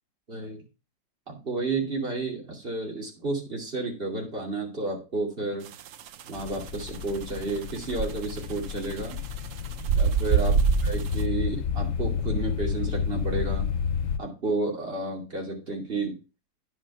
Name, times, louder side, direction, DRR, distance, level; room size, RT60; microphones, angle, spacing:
voice 1, 0.3-0.6 1.3-5.7 6.2-9.2 9.9-13.7 14.2-16.2, right 3 dB, 30° right, 0 dB, 2.8 m, -31 dB
sound 1, 5.7-11.2, right 7 dB, 70° right, 0.7 m, -25 dB
sound 2, 6.4-14.2, left 7 dB, 85° left, 0.6 m, -31 dB
9.6 x 5.4 x 5.5 m, 0.31 s
omnidirectional pair, 2.0 m